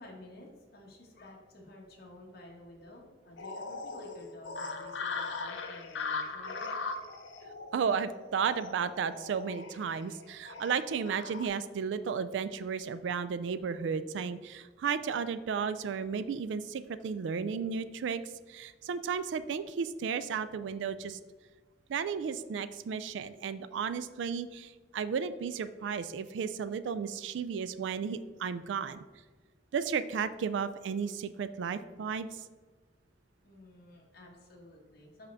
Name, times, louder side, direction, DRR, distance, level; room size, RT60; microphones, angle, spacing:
voice 1, 0.0-6.8 33.4-35.3, left 1 dB, 60° left, -2 dB, 1.4 m, -52 dB
sound 1, 3.4-11.5, left 4 dB, 90° left, 0.6 m, -40 dB
voice 2, 7.7-18.2 18.5-21.2 21.9-29.0 29.7-32.3, right 6 dB, 80° right, 13 dB, 0.3 m, -33 dB
5.7 x 5.2 x 3.4 m, 1.3 s
head